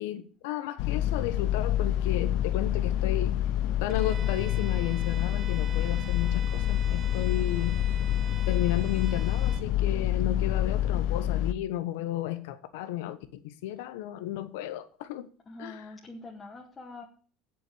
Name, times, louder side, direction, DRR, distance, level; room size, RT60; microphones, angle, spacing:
voice 1, 0.0-3.4 3.8-7.8 8.5-15.3 15.6-15.9, left 13 dB, 90° left, 1.1 m, -33 dB
sound 1, 0.8-11.5, left 11 dB, 65° left, 0.8 m, -27 dB
Bowed string instrument, 3.9-9.7, right 8 dB, 40° right, 1.1 m, -46 dB
voice 2, 15.5-17.0, left 2 dB, 20° left, 2.1 m, -44 dB
8.3 x 7.5 x 8.7 m
cardioid pair, 130°, 0 cm